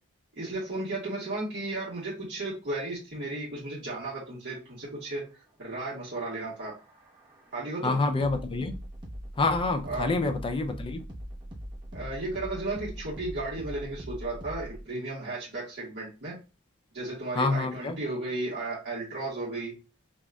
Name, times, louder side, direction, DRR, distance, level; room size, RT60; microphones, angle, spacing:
voice 1, 0.3-6.7 7.5-8.0 9.8-10.1 11.9-16.3 16.9-19.7, right 2 dB, 55° right, 1.5 m, -34 dB
sound 1, 6.4-14.8, equal, 20° right, 1.0 m, -42 dB
voice 2, 7.8-8.8 9.4-11.0 17.4-18.0, left 3 dB, 25° left, 0.3 m, -27 dB
5.8 x 2.4 x 2.3 m
head